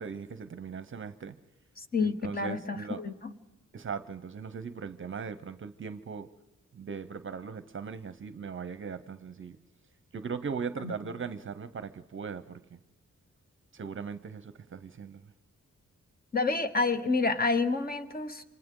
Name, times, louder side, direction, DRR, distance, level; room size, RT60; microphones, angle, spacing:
voice 1, 0.0-1.4 2.0-3.0 3.7-6.3 6.7-9.6 10.1-12.8 13.7-15.3, right 5 dB, 45° right, 0.7 m, -39 dB
voice 2, 1.8-3.3 10.8-10.9 16.3-18.4, left 3 dB, 30° left, 1.2 m, -29 dB
28.0 x 25.5 x 3.8 m
wide cardioid pair, 145°, 29 cm